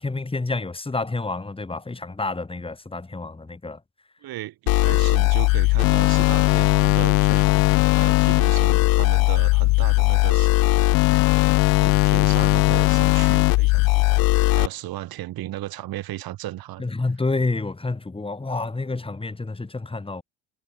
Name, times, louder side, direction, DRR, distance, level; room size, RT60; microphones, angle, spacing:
voice 1, 0.0-3.8 16.8-20.2, left 3 dB, 10° left, 1.7 m, -29 dB
voice 2, 4.2-7.5 7.8-10.5 11.1-16.9, right 15 dB, 55° right, 2.6 m, -35 dB
sound 1, 4.7-14.7, left 24 dB, 55° left, 0.6 m, -18 dB
hypercardioid pair, 55°, 43 cm